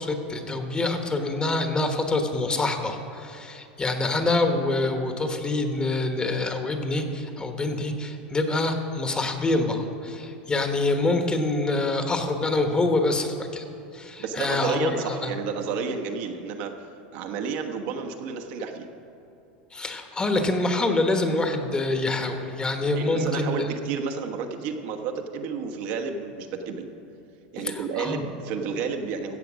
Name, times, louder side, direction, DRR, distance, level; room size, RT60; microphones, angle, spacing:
voice 1, 0.0-13.6 13.9-15.3 19.7-23.7 27.6-28.2, left 2 dB, 20° left, 6 dB, 1.3 m, -26 dB
voice 2, 14.2-16.9 17.1-18.9 22.8-26.9 27.5-29.4, right 5 dB, 65° right, 4 dB, 1.3 m, -31 dB
14.5 x 7.8 x 6.3 m, 2.7 s
supercardioid pair, 110°, 5 cm